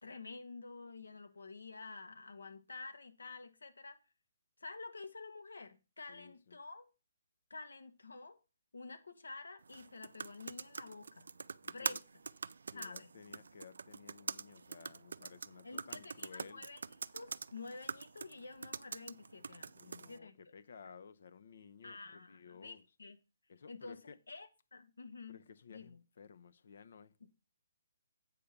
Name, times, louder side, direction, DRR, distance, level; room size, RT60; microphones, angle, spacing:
voice 1, 0.0-4.0 4.6-6.9 7.5-8.4 8.7-11.3 11.7-12.0 12.7-13.1 15.6-16.8 17.1-20.4 21.8-23.2 23.7-25.4 25.7-26.0 27.2-27.3, left 3 dB, 80° left, 1.6 m, -50 dB
voice 2, 6.1-6.6 11.6-12.0 12.7-16.7 19.7-22.8 23.5-24.2 25.3-27.1, left 6 dB, 60° left, 0.7 m, -56 dB
sound 1, 9.6-20.2, right 4 dB, 75° right, 0.4 m, -45 dB
8.4 x 5.4 x 5.7 m
figure-of-eight pair, 140°, 0 cm